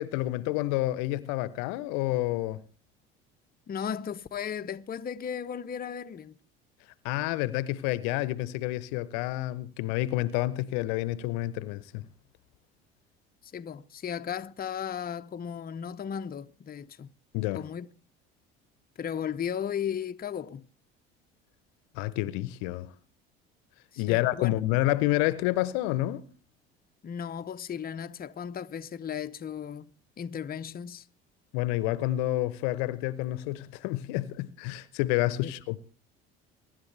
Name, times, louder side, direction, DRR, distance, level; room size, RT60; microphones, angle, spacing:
voice 1, 0.0-2.6 7.0-12.1 17.3-17.7 22.0-22.9 24.0-26.2 31.5-35.8, left 16 dB, 65° left, 0.9 m, -29 dB
voice 2, 3.7-6.3 13.4-17.1 17.5-17.9 19.0-20.7 23.9-24.5 27.0-29.9 30.2-31.0 35.4-35.5, left 8 dB, 30° left, 0.8 m, -35 dB
24.0 x 11.5 x 3.3 m
hypercardioid pair, 60°, 31 cm